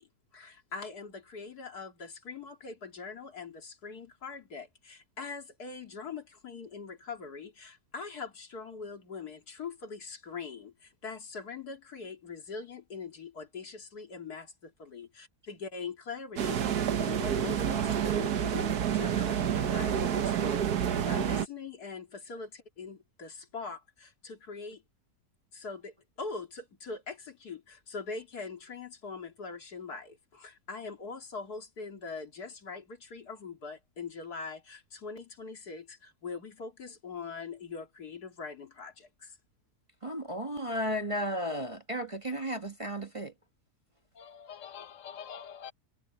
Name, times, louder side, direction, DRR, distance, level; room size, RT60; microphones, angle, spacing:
voice 1, 0.0-24.8 25.5-39.4, left 4 dB, 80° left, 3.0 m, -42 dB
sound 1, 16.4-21.5, right 9 dB, 85° right, 1.6 m, -29 dB
voice 2, 40.0-43.3, equal, 25° right, 1.1 m, -34 dB
voice 3, 44.1-45.7, left 8 dB, 60° left, 1.2 m, -45 dB
omnidirectional pair, 1.6 m